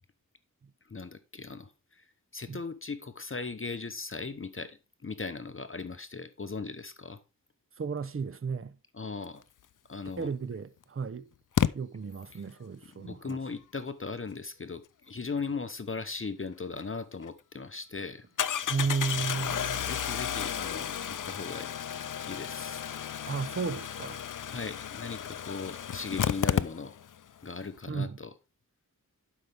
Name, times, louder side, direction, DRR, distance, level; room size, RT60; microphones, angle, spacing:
voice 1, 0.9-2.1 2.3-7.2 8.9-9.4 9.9-10.3 12.3-12.4 12.8-18.3 19.7-21.7 22.2-22.8 24.4-27.0 27.4-28.3, left 4 dB, 35° left, 0.9 m, -38 dB
voice 2, 7.8-8.7 10.2-11.2 11.7-13.4 18.7-19.8 23.3-24.2 27.9-28.2, right 5 dB, 35° right, 0.7 m, -33 dB
Engine starting, 10.1-10.2 11.6-11.7 16.8-16.9 17.2-17.3 18.4-27.2 27.5-27.6 27.8-27.9, left 9 dB, 60° left, 0.6 m, -32 dB
11.5 x 5.7 x 3.4 m
wide cardioid pair, 60°, 36 cm